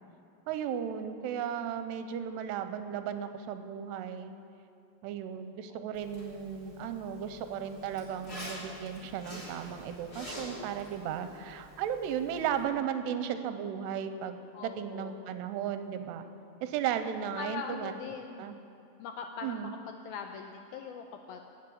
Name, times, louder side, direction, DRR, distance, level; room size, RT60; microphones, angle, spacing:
voice 1, 0.5-4.3 5.0-16.3 16.6-17.9 18.4-18.5 19.4-19.7, right 8 dB, 85° right, 9 dB, 2.8 m, -35 dB
Zipper (clothing), 5.9-12.6, left 1 dB, 25° left, 3.4 m, -47 dB
voice 2, 14.5-15.1 16.5-16.6 17.4-18.4 19.0-19.7 20.1-21.4, left 6 dB, 80° left, 4 dB, 2.2 m, -41 dB
18.5 x 7.4 x 8.6 m, 2.6 s
omnidirectional pair, 4.9 m